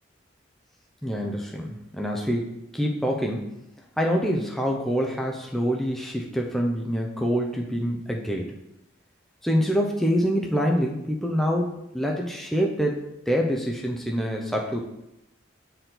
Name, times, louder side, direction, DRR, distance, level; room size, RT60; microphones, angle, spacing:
voice 1, 1.0-3.5 4.0-8.5 9.4-13.0 13.3-14.8, equal, ahead, 0 dB, 0.6 m, -26 dB
8.3 x 4.6 x 3.9 m, 0.86 s
head